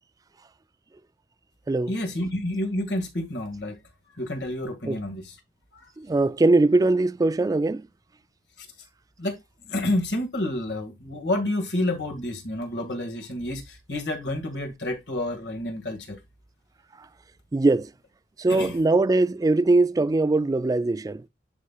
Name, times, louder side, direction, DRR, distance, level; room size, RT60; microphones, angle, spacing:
voice 1, 1.9-3.8 4.1-5.4 5.7-5.9 9.2-9.4 9.6-16.2 18.5-18.8, left 1 dB, 75° left, 2.0 m, -29 dB
voice 2, 6.0-7.8 17.5-17.9 18.4-21.2, right 2 dB, 20° right, 0.3 m, -21 dB
11.0 x 4.2 x 2.4 m
head